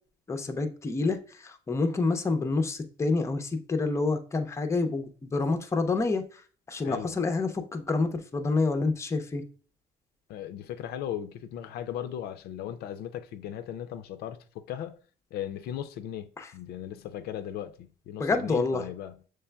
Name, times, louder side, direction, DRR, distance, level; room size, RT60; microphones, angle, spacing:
voice 1, 0.3-1.2 1.4-6.2 6.7-9.4 16.4-16.5 18.2-18.8, left 3 dB, 15° left, 0.5 m, -28 dB
voice 2, 6.8-7.2 10.3-15.0 15.3-19.2, left 10 dB, 70° left, 0.4 m, -37 dB
6.8 x 3.2 x 2.2 m
cardioid pair, 110°, 17 cm